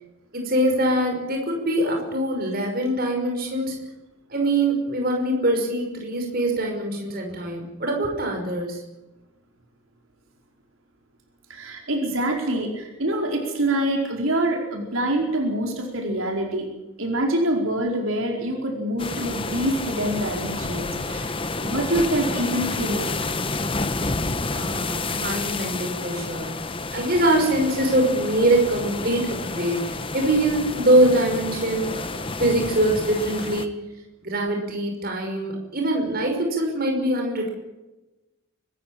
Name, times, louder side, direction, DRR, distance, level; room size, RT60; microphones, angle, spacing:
voice 1, 0.3-3.8 4.3-8.8 24.5-26.6 26.9-33.7 34.2-37.5, right 1 dB, 45° right, 2 dB, 5.7 m, -23 dB
voice 2, 11.5-16.6 17.0-21.3 21.6-23.1, right 1 dB, 70° right, 1 dB, 4.8 m, -25 dB
sound 1, 19.0-33.7, left 3 dB, 25° left, 1.1 m, -30 dB
24.5 x 14.5 x 8.9 m, 1.0 s
head